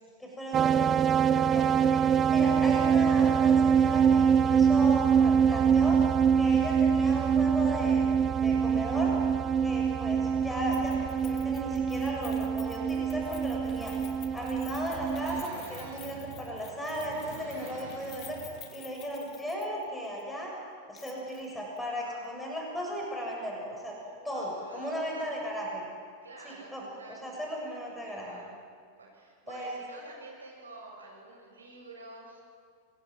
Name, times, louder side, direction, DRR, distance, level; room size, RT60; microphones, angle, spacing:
voice 1, 0.2-6.0 6.4-8.1 8.4-9.1 9.6-13.9 14.3-18.4 18.7-20.5 20.9-23.9 24.2-25.8 26.4-28.4 29.5-29.8, equal, 5° left, -2 dB, 7.1 m, -36 dB
sound 1, 0.5-15.4, right 7 dB, 25° right, 0.5 m, -24 dB
Keys jangling, 10.7-19.9 20.2-20.3 20.9-21.5 21.8-21.9, left 10 dB, 35° left, 2.3 m, -51 dB
sound 2, 14.1-18.9, right 6 dB, 50° right, 4.9 m, -48 dB
voice 2, 24.0-25.4 26.2-27.7 28.0-28.5 29.0-32.4, right 2 dB, 75° right, -1 dB, 7.6 m, -49 dB
25.5 x 21.5 x 7.8 m, 2.1 s
figure-of-eight pair, 90°, 0 cm